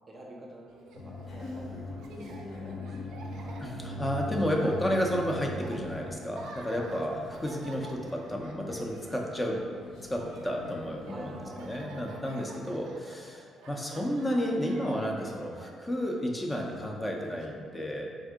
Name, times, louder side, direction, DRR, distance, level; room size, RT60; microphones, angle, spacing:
voice 1, 0.1-0.8 1.0-3.9 6.8-6.9 7.1-7.9 11.1-11.6, right 1 dB, 25° right, -3 dB, 0.6 m, -50 dB
Laughter, 0.7-17.5, right 3 dB, 85° right, 0.4 m, -51 dB
sound 1, 0.9-12.0, left 2 dB, 70° left, 0.5 m, -42 dB
voice 2, 3.6-9.6 10.1-11.4 11.6-18.1, equal, 15° left, 0 dB, 0.5 m, -32 dB
3.5 x 2.6 x 3.5 m, 2.2 s
cardioid pair, 90°, 0 cm